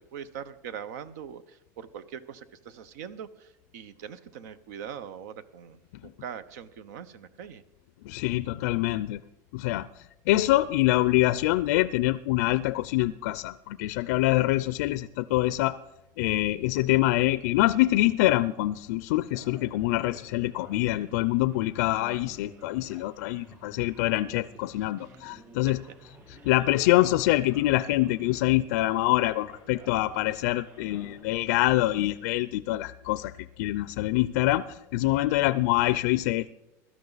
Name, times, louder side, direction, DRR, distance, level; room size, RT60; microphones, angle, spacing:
voice 1, 0.1-7.6 25.0-25.2 25.6-25.7, right 8 dB, 85° right, 16 dB, 0.8 m, -42 dB
voice 2, 8.1-9.2 9.5-9.9 10.3-15.8 16.2-25.8 26.3-33.3 33.6-36.5, left 17 dB, 80° left, 15 dB, 0.4 m, -25 dB
Male speech man speaking, 19.2-31.2, right 2 dB, 30° right, 5.4 m, -52 dB
16.5 x 12.5 x 4.0 m, 0.93 s
supercardioid pair, 155°, 9 cm